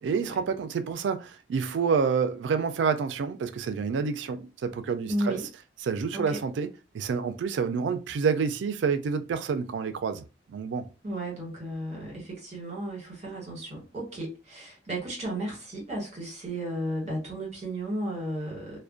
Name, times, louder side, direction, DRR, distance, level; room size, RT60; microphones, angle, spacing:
voice 1, 0.0-5.4 5.8-6.7 6.9-10.2 10.5-10.9, right 5 dB, 85° right, 0.3 m, -28 dB
voice 2, 5.1-5.5 6.1-6.4 11.0-18.8, right 1 dB, 40° right, 1.3 m, -34 dB
2.4 x 2.1 x 2.4 m
head